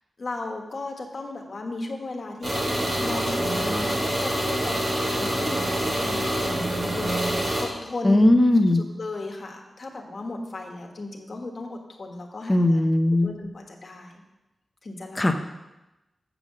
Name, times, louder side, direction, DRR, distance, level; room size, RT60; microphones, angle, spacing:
voice 1, 0.2-5.6 5.9-8.4 8.7-12.8 13.2-14.2 14.8-15.4, left 2 dB, 40° left, 1 dB, 1.3 m, -36 dB
sound 1, 2.4-7.6, right 1 dB, 35° right, 3.1 m, -26 dB
voice 2, 8.0-8.8 12.5-13.3 15.2-15.3, left 1 dB, 15° left, 6 dB, 0.6 m, -18 dB
8.0 x 5.7 x 6.2 m, 1.0 s
wide cardioid pair, 175°, 0 cm